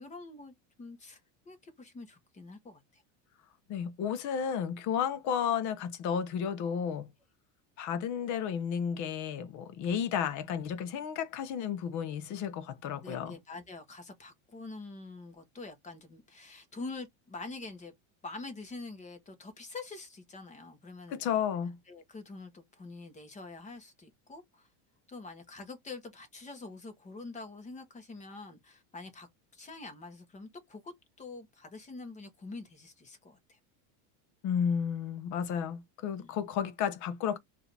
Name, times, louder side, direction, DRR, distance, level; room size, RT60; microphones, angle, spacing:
voice 1, 0.0-3.0 13.0-17.9 18.2-21.4 21.9-24.7 25.1-33.6 36.2-36.3, left 3 dB, 20° left, 1.2 m, -46 dB
voice 2, 3.7-7.1 7.8-13.4 21.1-21.8 34.4-37.4, left 8 dB, 45° left, 0.9 m, -32 dB
4.8 x 2.8 x 3.4 m
cardioid pair, 150°, 40 cm